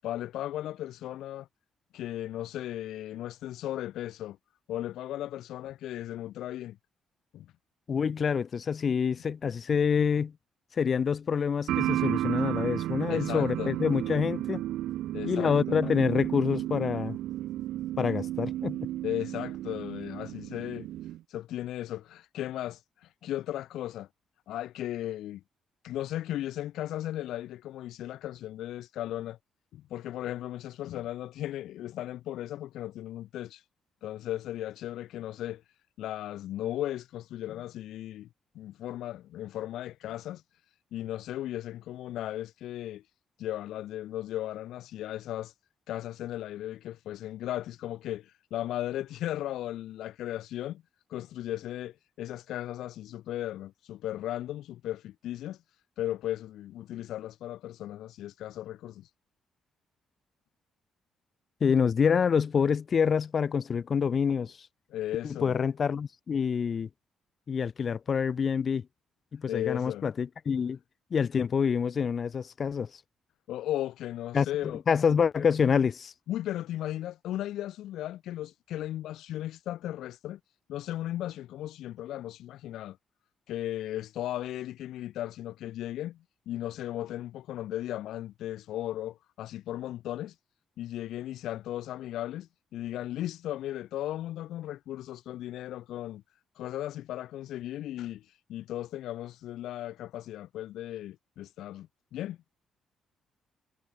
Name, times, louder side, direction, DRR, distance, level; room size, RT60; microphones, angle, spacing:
voice 1, 0.0-1.5 1.9-4.4 4.7-6.8 7.3-7.5 13.1-13.8 15.1-15.8 19.0-20.9 21.3-24.1 24.5-25.4 25.8-29.4 29.7-33.6 34.0-35.6 36.0-38.3 38.5-40.4 40.9-43.0 43.4-45.5 45.9-50.8 51.1-55.6 56.0-59.1 64.9-65.5 69.5-70.0 73.5-74.8 76.3-80.4 80.7-83.0 83.5-86.2 86.5-90.3 90.8-96.2 96.6-102.4, left 13 dB, 80° left, 0.6 m, -36 dB
voice 2, 7.9-10.3 10.8-14.6 15.3-17.2 18.0-18.8 61.6-64.6 65.2-66.9 67.5-68.8 69.3-70.8 71.1-72.9 74.3-74.5 74.9-76.1, left 6 dB, 45° left, 1.0 m, -27 dB
sound 1, 11.7-21.2, right 14 dB, 85° right, 0.4 m, -33 dB
cardioid pair, 90°, 0 cm